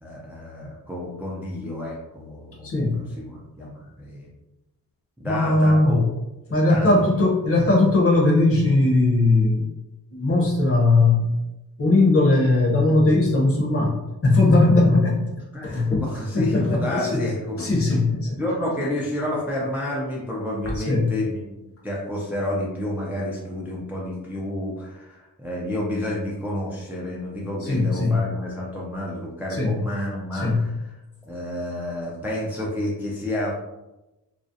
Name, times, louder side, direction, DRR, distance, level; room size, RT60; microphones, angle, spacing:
voice 1, 0.0-4.3 5.2-6.0 6.5-7.0 15.5-15.7 16.0-17.7 18.3-30.7 31.3-33.6, left 1 dB, 5° right, -4 dB, 0.3 m, -30 dB
voice 2, 2.6-3.0 5.2-6.0 6.5-9.7 10.1-11.3 11.8-15.3 15.6-16.0 16.3-17.2 17.6-18.4 20.7-21.1 27.6-28.2 29.5-29.8 30.3-30.6, left 2 dB, 40° left, -3 dB, 0.7 m, -19 dB
2.5 x 2.0 x 2.6 m, 0.99 s
wide cardioid pair, 125°, 36 cm